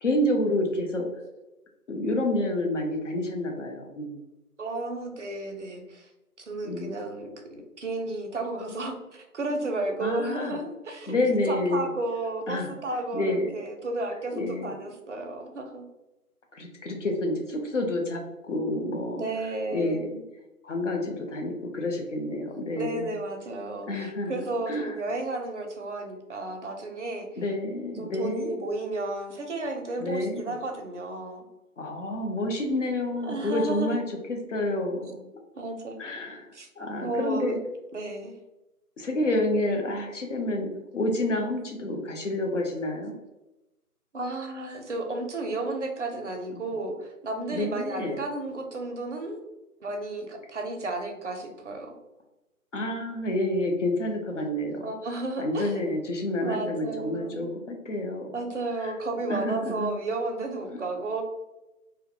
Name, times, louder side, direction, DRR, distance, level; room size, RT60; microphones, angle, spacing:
voice 1, 0.0-1.1 1.9-4.2 6.6-6.9 10.0-10.6 11.1-11.9 12.5-12.8 13.1-13.5 14.3-14.7 16.5-19.2 19.7-20.1 20.6-23.1 23.9-24.9 27.4-28.5 30.0-30.5 31.8-35.2 36.0-36.5 36.8-37.6 39.0-40.7 40.9-43.2 47.5-48.2 52.7-54.8 55.4-58.4 58.8-58.9 59.3-60.0, left 1 dB, 55° left, 2 dB, 0.6 m, -29 dB
voice 2, 4.6-6.1 6.5-11.1 11.5-15.9 19.1-20.2 22.8-27.3 28.0-31.4 33.1-34.0 35.6-36.0 36.5-36.7 37.0-37.6 37.9-38.3 44.1-49.4 49.8-51.9 54.8-55.8 56.4-57.4 58.3-61.2, right 2 dB, 50° right, 3 dB, 0.5 m, -33 dB
2.4 x 2.1 x 2.7 m, 1.0 s
figure-of-eight pair, 170°, 46 cm